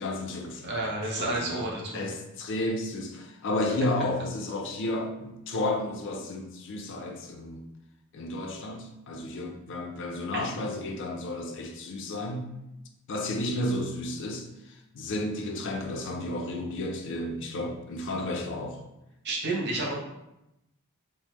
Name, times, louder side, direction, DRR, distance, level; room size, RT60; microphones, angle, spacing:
voice 1, 0.0-0.9 1.2-1.7 1.9-7.7 8.1-12.5 13.1-18.8, left 1 dB, 55° left, 3 dB, 0.4 m, -32 dB
voice 2, 0.6-2.0 10.3-10.5 19.2-19.9, right 2 dB, 50° right, -2 dB, 0.6 m, -30 dB
3.2 x 2.1 x 2.9 m, 0.88 s
head